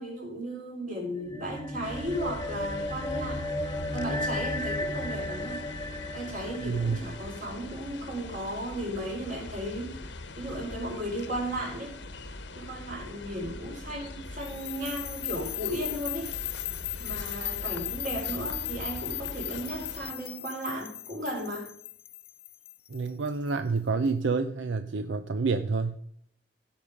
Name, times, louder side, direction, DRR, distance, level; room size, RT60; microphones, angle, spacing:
voice 1, 0.0-5.6 6.1-10.0 10.4-12.0 12.5-16.3 17.0-21.7, right 1 dB, 45° right, -2 dB, 4.7 m, -35 dB
sound 1, 1.1-7.8, left 1 dB, 15° left, 1.4 m, -34 dB
sound 2, 1.8-20.1, left 2 dB, 75° left, 1.1 m, -42 dB
voice 2, 6.6-7.0 22.9-26.0, right 4 dB, 80° right, 9 dB, 0.6 m, -28 dB
sound 3, 14.4-23.5, left 15 dB, 30° left, 0.4 m, -37 dB
16.0 x 5.5 x 5.2 m, 0.67 s
head